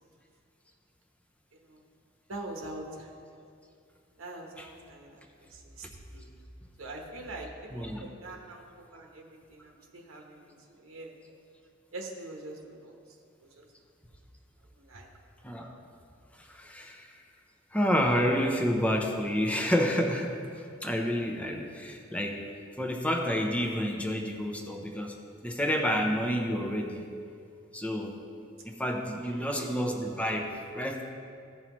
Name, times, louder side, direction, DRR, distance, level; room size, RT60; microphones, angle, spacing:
voice 1, 2.3-3.1 4.2-5.9 6.1-6.3 6.8-9.2 9.5-11.1 11.9-12.9 13.6-13.7 14.7-15.1 29.2-29.7, right 2 dB, 85° right, 1 dB, 1.1 m, -44 dB
voice 2, 7.7-8.0 15.4-15.7 16.4-17.1 17.7-20.3 20.8-22.4 22.8-25.2 25.4-27.0 27.7-28.2 28.8-31.0, equal, 5° left, 1 dB, 0.7 m, -29 dB
15.5 x 5.6 x 3.1 m, 2.5 s
head